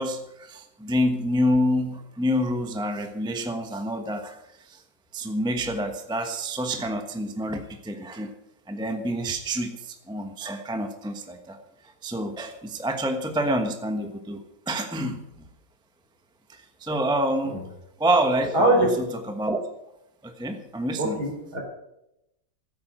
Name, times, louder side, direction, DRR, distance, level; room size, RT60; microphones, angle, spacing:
voice 1, 0.0-4.8 5.1-8.3 8.7-11.6 11.8-15.4 16.5-17.6 18.0-18.9 19.3-19.6 20.2-21.2, equal, 5° right, 6 dB, 0.8 m, -27 dB
voice 2, 18.5-18.9 21.0-21.6, right 1 dB, 55° right, 1 dB, 4.5 m, -22 dB
15.0 x 8.6 x 7.4 m, 0.86 s
omnidirectional pair, 2.1 m